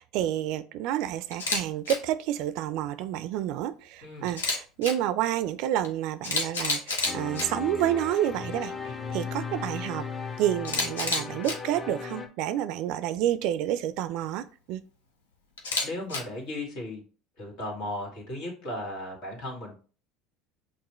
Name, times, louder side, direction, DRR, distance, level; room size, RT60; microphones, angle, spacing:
voice 1, 0.0-10.1 10.4-14.8, right 12 dB, 65° right, 13 dB, 0.3 m, -29 dB
Camera, 1.3-1.6 1.9-2.0 4.3-4.9 5.8-5.9 6.2-7.5 10.6-11.5 15.6-16.2, left 3 dB, 85° left, 0.8 m, -28 dB
sound 1, 7.0-12.3, left 5 dB, 30° left, 0.9 m, -36 dB
voice 2, 15.8-17.0 17.4-19.8, left 1 dB, 65° left, -1 dB, 1.9 m, -36 dB
5.9 x 2.5 x 3.1 m, 0.39 s
hypercardioid pair, 75°, 0 cm